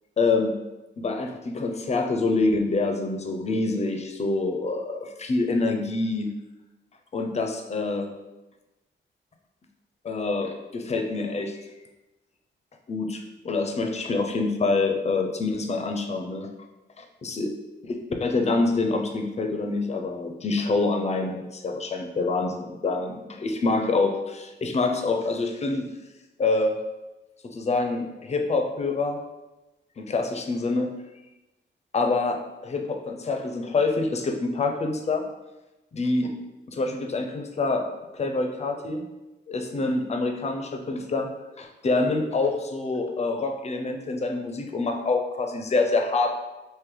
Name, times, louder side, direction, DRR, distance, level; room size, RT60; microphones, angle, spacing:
voice 1, 0.2-0.6 1.0-6.3 7.1-8.2 10.0-11.6 12.9-16.5 17.0-17.5 17.9-18.0 18.2-25.9 26.4-26.8 27.4-29.2 30.0-30.9 31.9-35.2 35.9-36.3 36.7-37.9 38.1-39.1 39.5-41.3 41.6-46.4, left 3 dB, 35° left, 4 dB, 0.5 m, -26 dB
3.8 x 2.7 x 3.1 m, 1.0 s
cardioid pair, 115°, 20 cm